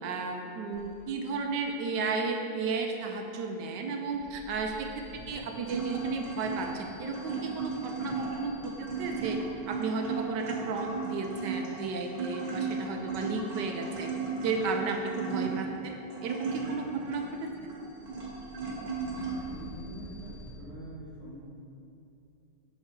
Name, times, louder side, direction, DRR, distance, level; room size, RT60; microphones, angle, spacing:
voice 1, 0.0-9.4 9.7-14.1 14.4-17.5, right 4 dB, 75° right, 4 dB, 1.0 m, -34 dB
sound 1, 0.7-1.3 1.6-2.1 4.0-14.4 16.4-20.5, right 1 dB, 15° right, 0.9 m, -53 dB
sound 2, 5.1-19.3, right 4 dB, 50° right, 1.5 m, -36 dB
voice 2, 19.1-21.4, equal, 75° left, -13 dB, 2.7 m, -44 dB
6.6 x 5.7 x 4.4 m, 2.7 s
omnidirectional pair, 2.3 m